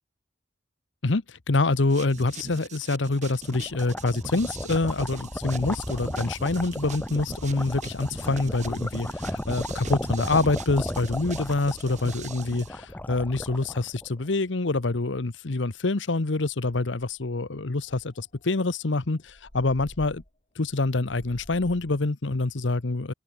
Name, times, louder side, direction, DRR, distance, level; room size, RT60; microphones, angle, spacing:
voice 1, 1.0-19.2 19.5-20.2 20.6-23.1, left 2 dB, 80° left, 1.0 m, -26 dB
sound 1, 1.9-12.7, right 4 dB, 40° right, 3.8 m, -42 dB
sound 2, 3.2-14.3, left 1 dB, 10° left, 0.7 m, -34 dB
sound 3, 17.0-17.3 17.8-22.0, equal, 35° left, 3.8 m, -50 dB
open air
head